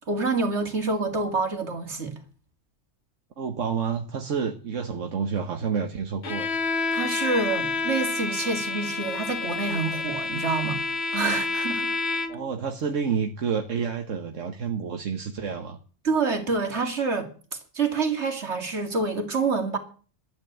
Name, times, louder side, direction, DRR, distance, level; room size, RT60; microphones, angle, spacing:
voice 1, 0.1-2.1 6.9-10.8 11.1-11.9 16.0-19.8, right 4 dB, 65° right, 2.7 m, -27 dB
voice 2, 3.4-6.6 12.3-15.8, right 6 dB, 85° right, 1.6 m, -29 dB
Bowed string instrument, 6.2-12.6, left 3 dB, 60° left, 1.2 m, -29 dB
12.5 x 10.0 x 8.0 m
omnidirectional pair, 1.3 m